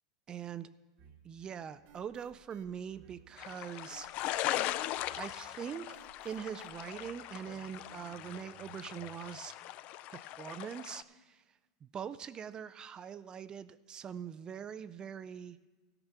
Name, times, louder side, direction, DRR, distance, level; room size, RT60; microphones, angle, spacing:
voice 1, 0.3-0.7 1.2-4.1 5.2-6.0 6.2-9.5 10.1-11.4 11.8-15.6, right 8 dB, 25° right, 14 dB, 0.4 m, -43 dB
sound 1, 1.0-9.2, right 7 dB, 50° right, 1.1 m, -61 dB
sound 2, 3.4-11.0, left 14 dB, 45° left, 0.4 m, -39 dB
13.5 x 5.9 x 6.7 m, 1.3 s
supercardioid pair, 125°, 3 cm